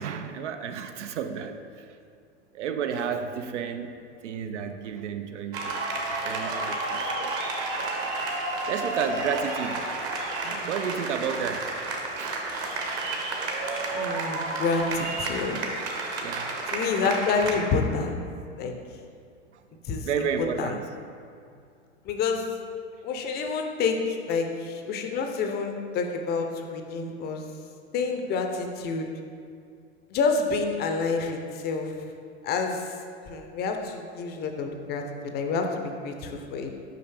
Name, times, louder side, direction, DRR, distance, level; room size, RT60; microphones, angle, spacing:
voice 1, 0.0-1.6 2.5-3.9 4.2-5.8 6.1-7.4 8.1-8.3 8.7-9.8 10.4-11.7 12.2-12.4 16.2-16.5 20.0-20.8, right 7 dB, 75° right, 8 dB, 0.5 m, -32 dB
sound 1, 5.5-17.5, right 2 dB, 40° right, 1.0 m, -31 dB
voice 2, 13.9-15.6 16.7-18.2 18.6-18.7 19.8-20.3 20.6-20.8 22.0-22.5 23.0-27.4 27.9-29.1 30.1-31.9 32.4-32.9 33.3-36.7, left 4 dB, 30° left, 4 dB, 0.5 m, -28 dB
5.6 x 5.1 x 3.3 m, 2.4 s
hypercardioid pair, 105°, 36 cm